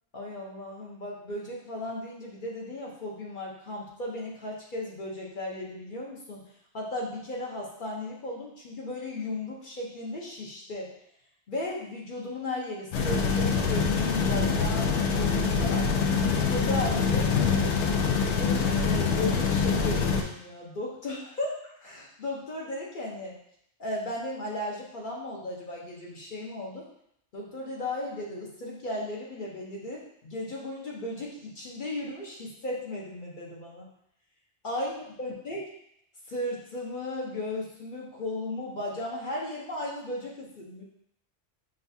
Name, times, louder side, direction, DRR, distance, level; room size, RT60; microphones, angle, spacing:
voice 1, 0.1-6.4 6.7-10.9 11.5-15.9 16.3-17.7 18.4-23.4 23.8-26.9 27.3-33.9 34.6-34.9 35.2-35.6 36.3-40.8, left 1 dB, 50° left, -4 dB, 0.8 m, -36 dB
sound 1, 12.9-20.2, left 5 dB, 85° left, 0.9 m, -25 dB
6.3 x 2.3 x 2.6 m, 0.74 s
omnidirectional pair, 1.2 m